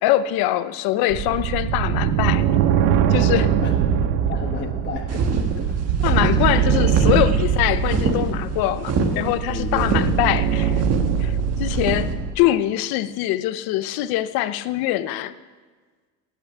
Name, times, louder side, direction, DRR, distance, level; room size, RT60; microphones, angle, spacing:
voice 1, 0.0-2.5 3.1-3.5 6.0-10.8 11.2-12.1 12.4-15.3, left 14 dB, 70° left, 14 dB, 0.8 m, -23 dB
sound 1, 1.1-12.3, right 7 dB, 90° right, 1.0 m, -22 dB
voice 2, 3.6-4.0 4.3-5.2 5.6-5.7 6.3-6.6 9.1-10.2, left 5 dB, 30° left, 1 dB, 1.2 m, -33 dB
sound 2, 5.1-12.1, right 4 dB, 40° right, 1.6 m, -25 dB
16.0 x 6.2 x 9.3 m, 1.5 s
cardioid pair, 140°, 37 cm